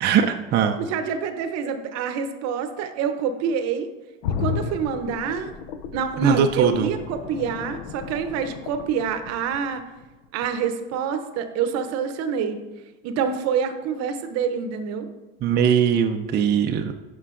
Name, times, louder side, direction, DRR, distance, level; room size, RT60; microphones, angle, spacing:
voice 1, 0.0-0.8 6.2-6.9 15.4-16.9, right 8 dB, 35° right, 5 dB, 0.4 m, -20 dB
voice 2, 0.8-3.9 4.3-5.5 5.9-9.8 10.3-12.6 13.0-15.1, right 6 dB, 60° right, 9 dB, 0.7 m, -26 dB
sound 1, 4.2-10.0 10.4-10.5, left 7 dB, 75° left, 0.5 m, -33 dB
9.7 x 4.5 x 2.5 m, 1.2 s
supercardioid pair, 100°, 29 cm